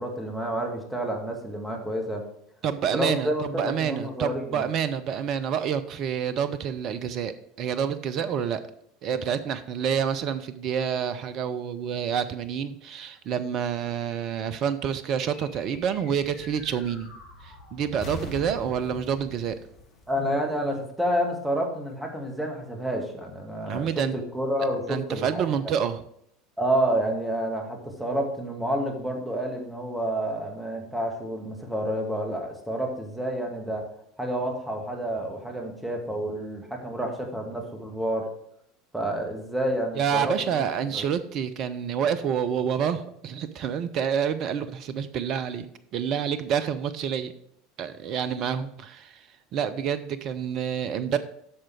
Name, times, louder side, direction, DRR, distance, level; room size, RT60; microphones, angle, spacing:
voice 1, 0.0-2.2 2.9-4.7 20.1-25.5 26.6-33.8 34.2-38.3 38.9-40.7 40.9-41.0, right 1 dB, 5° right, 1 dB, 1.9 m, -29 dB
voice 2, 2.6-8.6 9.0-17.1 17.4-19.6 23.7-24.1 24.9-26.0 39.9-45.7 45.9-47.3 47.8-49.3 49.5-51.2, right 8 dB, 45° right, 13 dB, 0.6 m, -28 dB
sound 1, 15.3-21.0, left 2 dB, 45° left, 1.9 m, -44 dB
8.7 x 6.2 x 4.8 m, 0.70 s
figure-of-eight pair, 75°, 0 cm